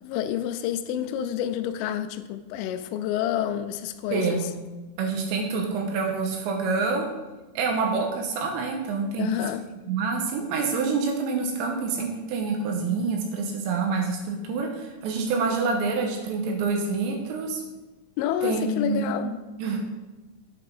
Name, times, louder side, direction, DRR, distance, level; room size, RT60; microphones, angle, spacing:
voice 1, 0.0-4.5 9.2-9.7 18.2-19.4, left 10 dB, 85° left, 10 dB, 3.1 m, -29 dB
voice 2, 4.1-4.5 5.0-7.1 7.6-9.3 9.9-17.6 18.4-19.2 19.6-19.8, right 4 dB, 75° right, 2 dB, 3.0 m, -27 dB
8.1 x 5.8 x 5.4 m, 1.2 s
omnidirectional pair, 5.6 m